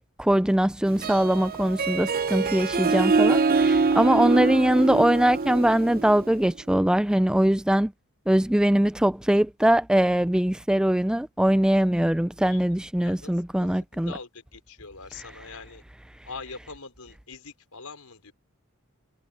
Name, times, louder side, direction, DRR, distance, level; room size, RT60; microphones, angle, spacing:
voice 1, 0.0-7.9 8.3-14.2 15.1-15.3, right 1 dB, 5° right, 0.3 m, -22 dB
Harp, 0.9-6.4, right 4 dB, 40° right, 0.7 m, -24 dB
voice 2, 14.8-15.8 16.3-18.3, left 4 dB, 80° left, 4.9 m, -41 dB
head